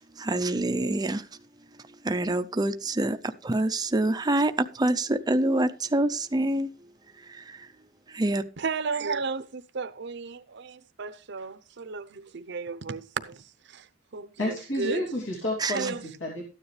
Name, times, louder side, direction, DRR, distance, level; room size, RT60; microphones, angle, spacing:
voice 1, 0.2-1.3 2.0-6.7 7.3-7.7 8.1-8.4 15.6-15.9, right 2 dB, 20° right, 0.5 m, -26 dB
voice 2, 8.6-9.4 9.7-10.4 11.0-12.0 12.3-13.0 14.1-14.3 15.8-15.9, right 5 dB, 65° right, 0.7 m, -32 dB
voice 3, 14.4-16.4, left 1 dB, 80° left, 2.9 m, -30 dB
13.0 x 9.7 x 3.2 m
head